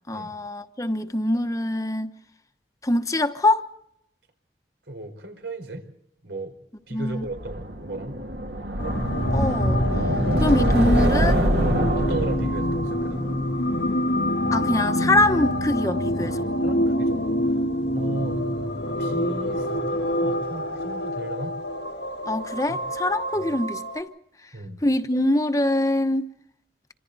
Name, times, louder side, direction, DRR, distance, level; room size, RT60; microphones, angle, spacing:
voice 1, 0.1-2.1 2.8-3.6 6.9-7.2 9.3-9.8 10.4-11.4 14.5-16.5 22.3-24.1 24.8-26.3, left 1 dB, 20° left, 1.0 m, -24 dB
voice 2, 4.9-5.9 6.2-6.5 6.9-8.2 11.9-13.4 16.2-17.5 17.9-18.4 19.0-21.6 22.7-22.8 23.3-23.5 24.5-24.8, right 2 dB, 90° right, 4.7 m, -35 dB
sound 1, 7.3-14.3, right 1 dB, 70° right, 2.6 m, -25 dB
sound 2, 8.8-24.0, left 1 dB, 85° left, 1.7 m, -26 dB
27.5 x 25.5 x 4.1 m
head